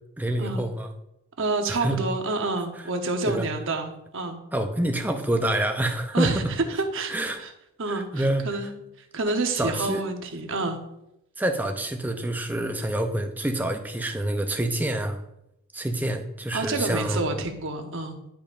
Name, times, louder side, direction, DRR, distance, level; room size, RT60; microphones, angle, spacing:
voice 1, 0.2-0.9 1.7-2.0 3.3-3.5 4.5-6.5 7.1-7.4 7.9-8.5 9.6-10.0 11.4-15.2 15.7-17.2, right 1 dB, 10° right, 5 dB, 0.5 m, -27 dB
voice 2, 1.4-4.4 6.1-6.4 6.7-7.5 7.8-8.7 9.1-10.8 16.5-18.2, right 3 dB, 60° right, 5 dB, 0.9 m, -28 dB
10.0 x 5.3 x 2.5 m, 0.85 s
head